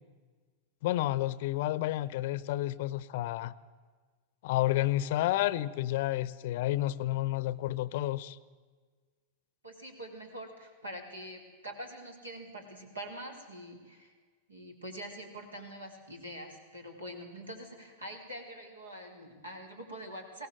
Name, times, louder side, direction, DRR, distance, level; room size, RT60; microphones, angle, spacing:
voice 1, 0.8-3.5 4.4-8.4, left 15 dB, 50° left, 19 dB, 0.7 m, -30 dB
voice 2, 9.6-14.1 14.5-20.5, right 1 dB, 80° right, 3 dB, 3.9 m, -44 dB
22.0 x 17.5 x 7.7 m, 1.5 s
figure-of-eight pair, 90°, 0 cm